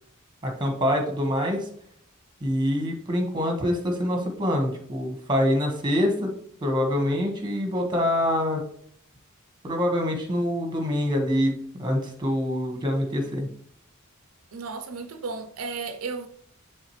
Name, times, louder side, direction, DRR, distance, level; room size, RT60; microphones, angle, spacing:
voice 1, 0.4-1.6 2.4-6.3 6.6-8.6 9.6-13.5, left 1 dB, 20° right, 1.5 m, -25 dB
voice 2, 14.5-16.3, right 4 dB, 85° right, 0.6 m, -34 dB
10.0 x 3.6 x 3.2 m
head